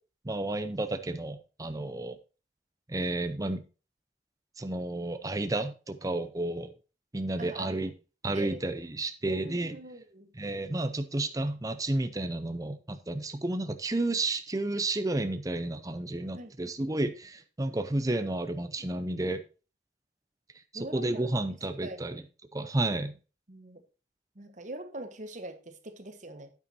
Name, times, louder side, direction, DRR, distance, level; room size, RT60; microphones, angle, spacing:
voice 1, 0.2-2.2 2.9-3.6 4.6-6.7 7.1-7.9 8.2-9.8 10.4-19.4 20.7-22.2 22.5-23.1, right 2 dB, 20° right, 0.6 m, -31 dB
voice 2, 7.4-7.8 8.3-8.6 9.2-10.3 16.3-16.6 18.8-19.2 20.7-21.3 21.8-22.0 23.5-23.8 24.3-26.5, right 1 dB, 45° right, 1.2 m, -43 dB
9.2 x 8.7 x 2.8 m
head